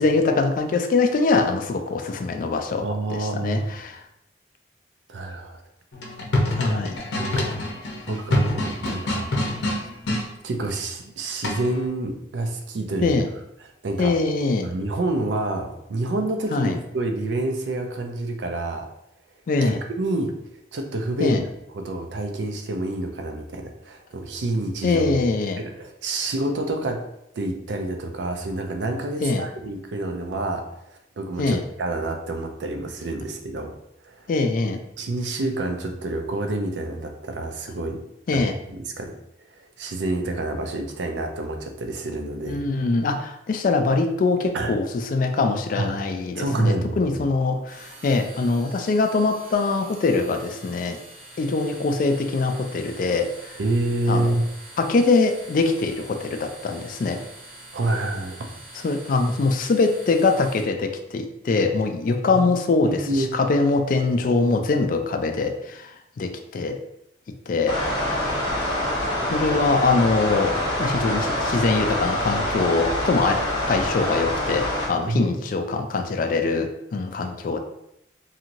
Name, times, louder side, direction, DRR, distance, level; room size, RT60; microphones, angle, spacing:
voice 1, 0.0-4.0 6.6-7.0 13.0-13.3 14.0-14.7 16.5-16.8 19.5-19.8 21.2-21.4 24.8-25.6 29.2-29.5 31.4-31.6 34.3-34.8 38.3-38.5 42.5-51.0 51.4-53.6 54.1-54.4 54.8-57.2 58.8-65.9 66.2-66.8 67.5-67.8 69.3-73.4 73.7-77.6, left 3 dB, 50° left, 6 dB, 0.3 m, -23 dB
voice 2, 2.8-3.7 5.1-5.6 6.7-6.9 7.1-7.5 8.1-9.3 10.4-13.1 13.8-14.1 14.6-18.9 19.6-20.3 20.7-21.4 21.7-25.0 25.6-27.0 27.4-30.6 31.2-33.7 34.0-34.3 35.0-38.0 38.3-39.1 39.5-42.6 44.5-44.7 45.7-45.9 46.3-47.3 53.6-54.5 57.7-58.5 62.3-62.5 62.8-63.3 75.1-75.4, right 2 dB, 90° right, 4 dB, 0.5 m, -28 dB
sound 1, 5.9-10.3 11.4-11.9, left 1 dB, 85° left, 0.6 m, -26 dB
sound 2, 47.7-60.6, right 1 dB, 40° right, 1.0 m, -45 dB
sound 3, 67.7-74.9, left 1 dB, 25° left, 0.8 m, -25 dB
2.9 x 2.7 x 2.5 m, 0.82 s
head